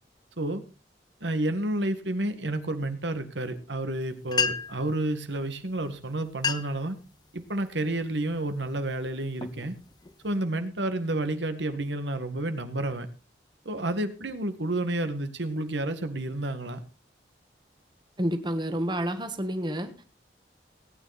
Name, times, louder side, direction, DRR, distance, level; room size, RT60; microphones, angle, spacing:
voice 1, 1.2-6.9 7.3-9.7 10.2-13.1 13.7-16.8, right 1 dB, 85° right, 9 dB, 1.8 m, -30 dB
sound 1, 4.0-4.1 4.3-4.9 5.8-5.9 6.3-6.9 7.4-7.7 8.3-8.6 9.1-10.4, left 6 dB, 25° left, 0.8 m, -31 dB
voice 2, 18.2-20.0, right 1 dB, 25° right, 8 dB, 1.5 m, -29 dB
18.5 x 9.5 x 4.2 m, 0.33 s
head